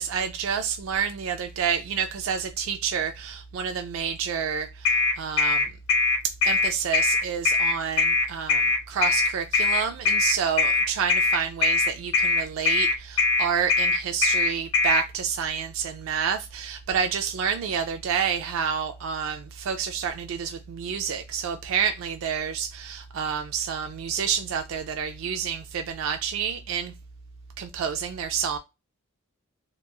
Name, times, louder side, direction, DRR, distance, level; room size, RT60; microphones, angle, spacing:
voice 1, 0.0-5.7 6.4-26.9 27.6-28.6, right 7 dB, 70° right, 0.3 m, -29 dB
sound 1, 4.9-15.0, left 4 dB, 75° left, 0.9 m, -21 dB
2.9 x 2.2 x 2.2 m
head